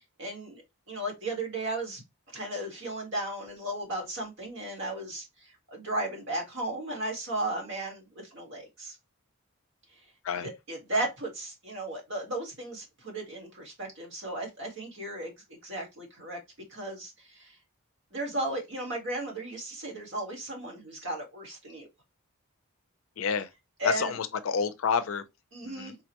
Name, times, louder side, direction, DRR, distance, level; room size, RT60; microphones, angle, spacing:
voice 1, 0.2-2.0 2.3-8.9 10.4-16.4 16.7-17.6 18.1-21.9 23.8-24.2 25.5-25.9, right 1 dB, 60° right, 1.4 m, -35 dB
voice 2, 23.2-23.5 23.8-25.2 25.6-25.9, left 6 dB, 65° left, 0.4 m, -29 dB
3.7 x 2.1 x 2.8 m
head